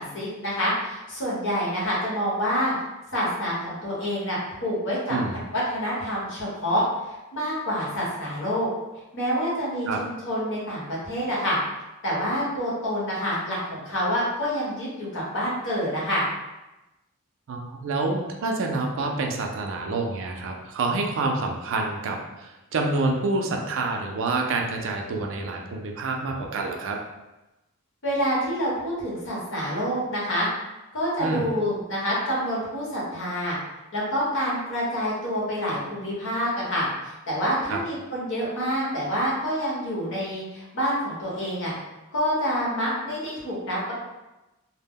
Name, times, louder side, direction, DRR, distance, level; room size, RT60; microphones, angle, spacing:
voice 1, 0.0-2.7 3.1-5.2 5.5-6.8 7.1-8.7 9.1-11.6 12.0-16.2 28.0-30.5 30.9-33.6 33.9-41.7 42.1-43.9, equal, 60° left, -6 dB, 1.0 m, -27 dB
voice 2, 17.5-27.0 31.2-31.5 37.7-37.8, right 3 dB, 60° right, 2 dB, 0.4 m, -27 dB
2.1 x 2.1 x 3.5 m, 1.0 s
head